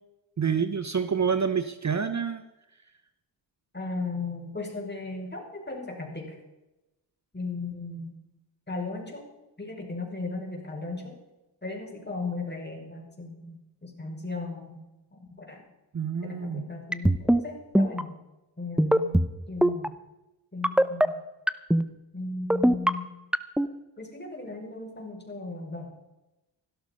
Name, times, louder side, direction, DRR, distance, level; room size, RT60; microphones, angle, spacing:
voice 1, 0.4-2.4 15.9-16.7, right 6 dB, 35° right, 11 dB, 0.9 m, -27 dB
voice 2, 3.7-6.4 7.3-8.2 8.7-9.2 9.6-11.2 11.6-14.8 15.2-15.6 16.2-18.1 18.6-19.2 19.5-19.9 20.5-21.2 22.1-23.1 24.0-25.9, left 3 dB, 20° left, 1 dB, 6.0 m, -36 dB
sound 1, 16.9-17.4 17.7-18.0 18.8-19.3 19.6-19.9 20.6-21.1 21.5-21.8 22.5-22.9 23.3-23.7, right 1 dB, ahead, 0.8 m, -20 dB
16.5 x 12.5 x 5.4 m, 0.98 s
cardioid pair, 55°, 47 cm